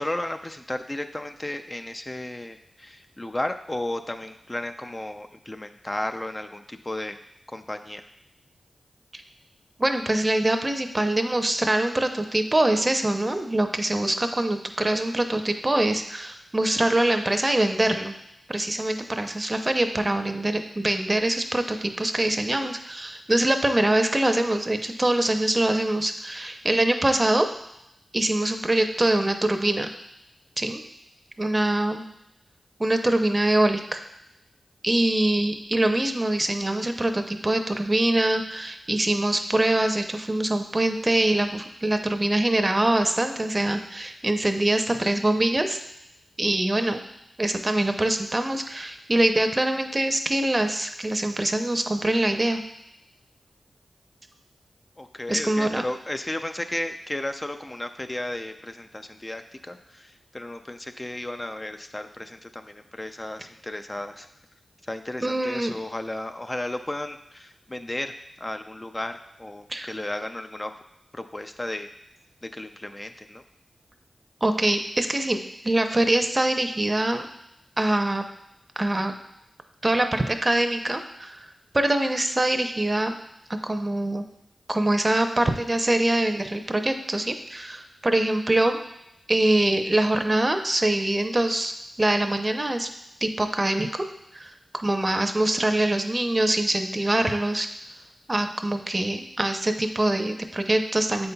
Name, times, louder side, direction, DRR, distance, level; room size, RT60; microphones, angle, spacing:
voice 1, 0.0-7.2 7.5-8.1 55.0-64.3 64.8-70.7 71.1-71.9 72.4-73.4, left 1 dB, 30° left, 7 dB, 0.4 m, -34 dB
voice 2, 9.8-18.2 18.5-27.5 28.1-29.9 30.6-30.8 31.4-32.0 32.8-34.0 34.8-45.8 46.4-47.0 47.4-52.6 55.3-55.8 65.2-65.8 69.7-69.9 74.4-77.3 77.8-78.2 78.8-79.1 79.8-81.5 81.7-83.2 83.5-84.2 84.7-88.8 89.3-92.9 93.2-94.0 94.3-97.7 98.3-101.3, right 1 dB, 30° right, 6 dB, 0.6 m, -24 dB
7.8 x 5.4 x 2.3 m, 0.81 s
cardioid pair, 40°, 0 cm